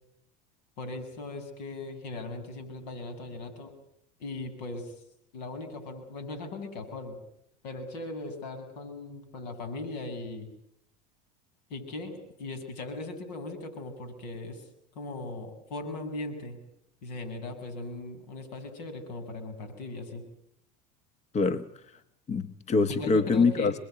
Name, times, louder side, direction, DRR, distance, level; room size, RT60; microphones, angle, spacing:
voice 1, 0.8-3.7 4.2-5.0 5.3-7.2 7.6-10.5 11.7-14.6 14.9-16.6 17.0-20.2 22.9-23.7, left 2 dB, 75° left, 8 dB, 7.9 m, -38 dB
voice 2, 21.3-22.0 22.3-23.7, left 4 dB, 30° left, 12 dB, 1.5 m, -25 dB
28.5 x 22.0 x 9.5 m, 0.75 s
hypercardioid pair, 90°, 21 cm